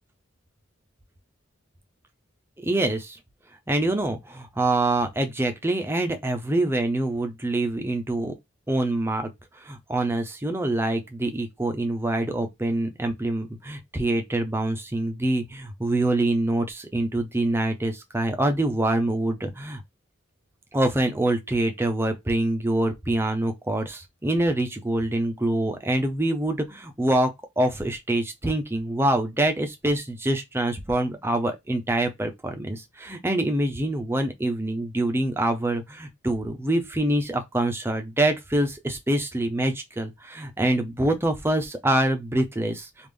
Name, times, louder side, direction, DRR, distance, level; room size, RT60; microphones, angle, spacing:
voice 1, 2.6-3.2 3.7-8.3 8.7-9.3 9.5-19.8 20.7-27.3 27.6-43.1, right 1 dB, 10° right, 0.6 m, -25 dB
3.5 x 2.5 x 3.4 m
head